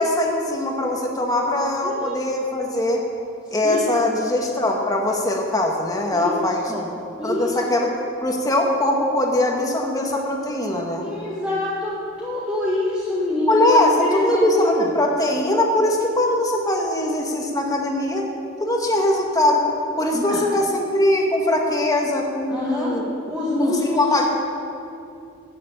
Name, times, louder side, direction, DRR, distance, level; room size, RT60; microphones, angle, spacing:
voice 1, 0.0-3.0 3.5-6.6 7.2-7.9 8.2-11.1 13.5-18.2 18.6-19.6 20.0-23.1 23.6-24.3, left 1 dB, 20° left, 1 dB, 1.7 m, -21 dB
voice 2, 1.8-2.2 3.6-3.8 6.1-6.9 7.2-7.5 11.0-14.9 20.1-20.4 22.5-22.9 23.3-24.1, left 2 dB, 5° right, -8 dB, 1.9 m, -26 dB
14.0 x 7.4 x 9.1 m, 2.6 s
head